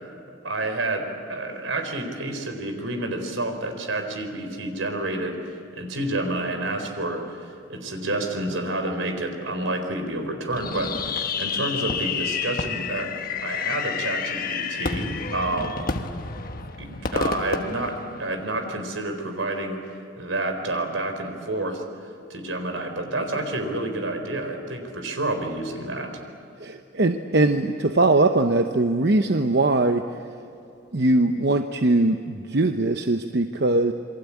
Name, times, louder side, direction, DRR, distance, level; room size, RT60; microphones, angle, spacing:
voice 1, 0.4-13.1 13.4-15.8 16.8-19.8 20.2-21.8 22.3-26.1, right 2 dB, 80° right, 5 dB, 4.2 m, -29 dB
Fireworks, 10.5-18.7, left 5 dB, 45° left, 1.4 m, -29 dB
voice 2, 26.6-30.0 30.9-33.9, right 2 dB, 55° right, 6 dB, 0.9 m, -21 dB
28.0 x 23.5 x 8.6 m, 2.6 s
head